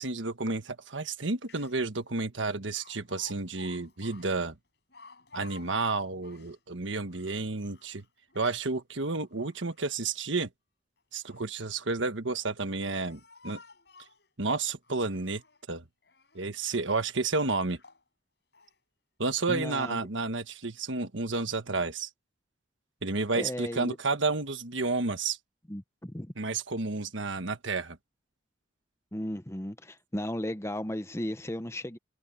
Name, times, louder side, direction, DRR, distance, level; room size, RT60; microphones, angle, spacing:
voice 1, 0.0-4.5 5.3-8.0 8.3-10.5 11.1-13.6 14.4-15.4 15.7-15.8 16.3-17.8 19.2-22.1 23.0-25.4 26.4-28.0, right 3 dB, 80° right, 1.4 m, -31 dB
Speech, 1.2-1.3 1.4-2.0 2.8-6.6 7.1-8.7 9.3-10.1 11.0-11.6 12.3-14.3 14.8-15.6 16.0-16.5 17.1-17.2 17.7-18.1 18.5-18.8, left 4 dB, 60° left, 7.8 m, -54 dB
voice 2, 19.5-20.0 23.3-24.0 25.7-26.3 29.1-32.0, left 1 dB, 15° left, 0.9 m, -35 dB
head